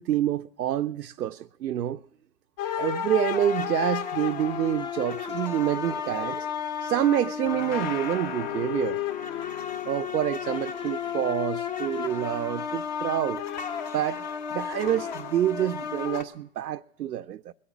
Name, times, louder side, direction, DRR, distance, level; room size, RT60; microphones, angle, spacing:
voice 1, 0.0-2.0 2.8-6.5 6.8-9.0 9.9-13.4 13.9-17.5, right 11 dB, 80° right, 0.5 m, -27 dB
sound 1, 2.6-16.2, left 8 dB, 30° left, 0.8 m, -32 dB
21.0 x 8.5 x 5.9 m
figure-of-eight pair, 140°, 47 cm